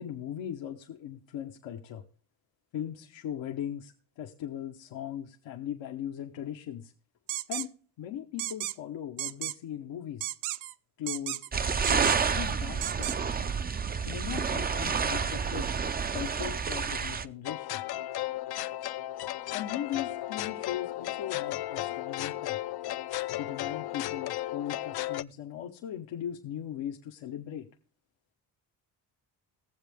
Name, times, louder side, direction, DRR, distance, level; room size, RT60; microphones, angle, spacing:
voice 1, 0.0-2.0 2.7-6.9 7.5-7.7 8.0-10.3 11.0-13.3 13.9-15.7 16.1-17.8 19.5-22.6 23.3-27.7, left 10 dB, 80° left, 2 dB, 1.0 m, -39 dB
sound 1, 7.3-7.7 8.4-8.7 9.2-9.5 10.2-10.7 11.1-11.5 11.8-12.3 12.8-13.2, right 15 dB, 85° right, 0.5 m, -34 dB
sound 2, 11.5-17.2, right 5 dB, 20° right, 0.4 m, -29 dB
sound 3, 17.4-25.2, left 15 dB, 60° left, 0.5 m, -34 dB
18.5 x 7.4 x 3.5 m, 0.40 s
cardioid pair, 75°, 45 cm